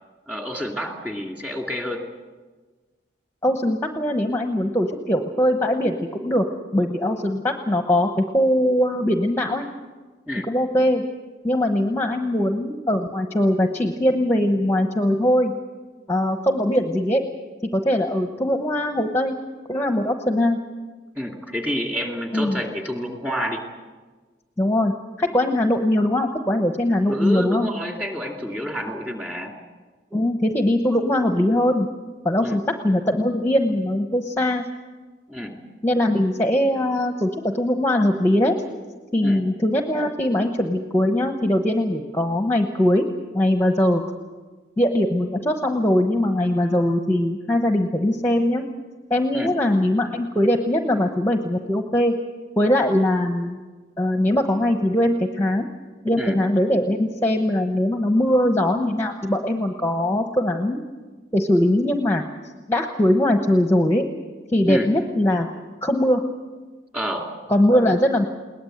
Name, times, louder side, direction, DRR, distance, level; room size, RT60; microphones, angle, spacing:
voice 1, 0.3-2.0 10.3-10.5 21.2-23.6 27.1-29.5 32.4-32.6 35.3-35.5 39.2-39.4 49.3-49.5 56.2-56.4 64.7-64.9 66.9-67.3, equal, 10° right, 2 dB, 2.5 m, -28 dB
voice 2, 3.4-6.4 6.7-9.7 10.5-11.0 11.4-15.5 16.1-17.2 17.6-19.4 19.7-20.6 22.3-22.6 24.6-24.9 25.2-27.7 30.1-31.9 32.2-34.6 35.8-38.6 39.1-43.1 43.3-44.0 44.8-48.6 49.1-52.1 52.6-53.6 54.0-55.7 56.0-60.8 61.3-62.2 62.7-64.1 64.5-65.5 65.8-66.2 67.5-68.2, left 1 dB, 10° left, 5 dB, 1.0 m, -21 dB
21.5 x 19.0 x 8.0 m, 1.3 s
head